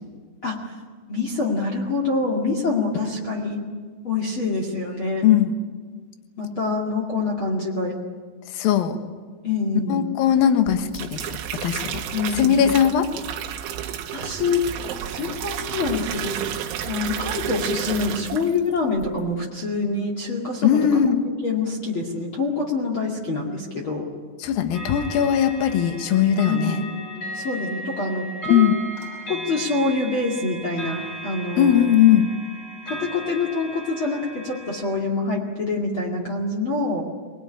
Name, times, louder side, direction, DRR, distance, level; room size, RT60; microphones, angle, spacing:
voice 1, 1.1-3.6 4.0-5.2 6.4-7.9 9.4-10.0 12.1-12.6 14.1-14.7 15.1-16.4 16.9-24.1 26.5-27.0 27.3-28.6 29.3-32.0 32.9-37.0, left 3 dB, 40° left, -1 dB, 1.8 m, -26 dB
voice 2, 5.2-5.5 8.6-9.0 9.9-11.2 11.6-12.0 12.4-13.1 20.6-21.2 24.4-26.8 28.5-28.8 31.6-32.3, left 9 dB, 65° left, 8 dB, 2.4 m, -19 dB
sound 1, 10.7-18.7 19.0-19.3, right 10 dB, 70° right, 3.5 m, -31 dB
sound 2, 24.7-34.8, right 2 dB, 20° left, 7.3 m, -36 dB
25.5 x 19.0 x 10.0 m, 1.5 s
omnidirectional pair, 6.0 m